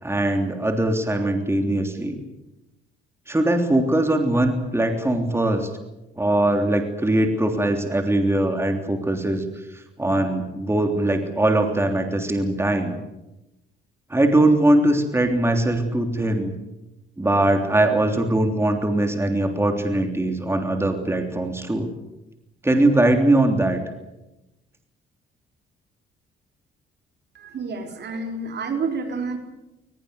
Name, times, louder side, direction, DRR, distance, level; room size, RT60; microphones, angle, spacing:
voice 1, 0.0-2.2 3.3-5.7 6.2-9.4 9.7-13.0 14.1-16.5 17.2-21.9 22.6-23.8, right 1 dB, 10° right, 5 dB, 3.3 m, -21 dB
voice 2, 27.3-29.4, right 4 dB, 60° right, 5 dB, 4.4 m, -29 dB
21.5 x 20.5 x 8.1 m, 0.96 s
cardioid pair, 90°, 20 cm